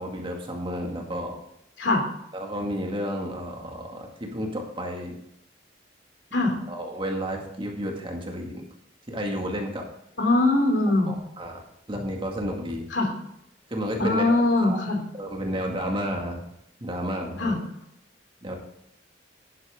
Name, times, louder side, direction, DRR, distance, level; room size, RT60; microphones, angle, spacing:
voice 1, 0.0-1.4 2.3-5.2 6.7-8.6 9.1-9.8 11.1-12.9 13.7-14.3 14.6-14.8 15.1-16.4 16.8-17.6 18.4-18.6, equal, 30° right, 1 dB, 2.0 m, -31 dB
voice 2, 10.2-11.1 12.9-13.1 14.0-15.0 17.4-17.6, left 2 dB, 70° left, 3 dB, 2.9 m, -22 dB
11.5 x 10.5 x 3.7 m, 0.78 s
head